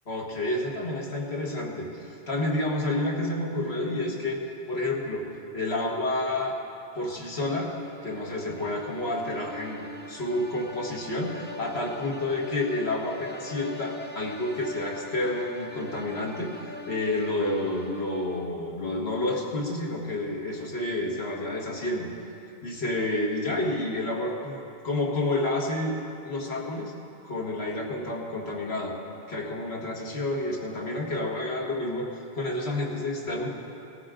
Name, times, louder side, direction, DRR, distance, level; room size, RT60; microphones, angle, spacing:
voice 1, 0.1-4.4 4.7-5.3 5.5-6.6 7.0-7.7 8.0-22.1 22.6-26.9 27.2-29.0 29.3-33.5, left 2 dB, 80° left, -2 dB, 2.0 m, -30 dB
sound 1, 7.7-18.6, left 1 dB, 10° left, 0.6 m, -42 dB
18.0 x 14.0 x 3.8 m, 2.6 s
omnidirectional pair, 1.1 m